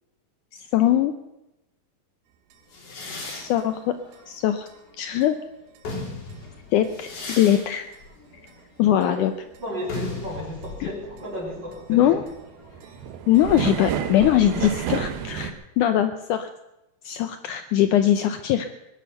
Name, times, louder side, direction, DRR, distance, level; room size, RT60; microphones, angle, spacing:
voice 1, 0.7-1.1 3.3-4.0 4.3-4.7 5.0-5.4 6.7-7.9 8.8-9.3 10.8-10.9 11.9-12.2 13.3-16.5 17.1-18.7, left 11 dB, 90° left, 9 dB, 1.8 m, -21 dB
sound 1, 2.5-2.6 3.1-3.2 3.6-3.7 4.1-4.2 4.7-4.8 5.2-5.3 5.8-5.9 6.3-6.4 6.8-6.9 7.4-7.5 7.9-8.0 8.5-8.6 9.0-9.1 9.5-9.6 10.1-10.4 10.6-10.7 11.0-15.5, right 8 dB, 80° right, 2.9 m, -31 dB
sound 2, 2.7-5.2 5.6-13.1, left 3 dB, 55° left, 4.7 m, -38 dB
voice 2, 9.6-12.2, equal, 30° right, -1 dB, 3.7 m, -34 dB
19.0 x 11.0 x 6.8 m, 0.91 s
omnidirectional pair, 4.4 m